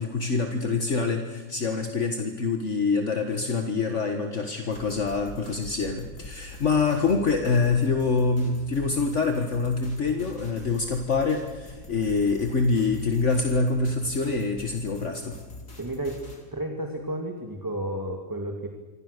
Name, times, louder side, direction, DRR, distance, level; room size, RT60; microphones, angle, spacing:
voice 1, 0.0-15.4, left 4 dB, 60° left, 5 dB, 1.9 m, -25 dB
sound 1, 4.7-16.4, left 2 dB, 75° left, 4.8 m, -44 dB
voice 2, 15.8-16.2 16.5-18.7, right 1 dB, 15° right, 2 dB, 2.3 m, -32 dB
27.0 x 25.0 x 6.8 m, 1.2 s
omnidirectional pair, 1.5 m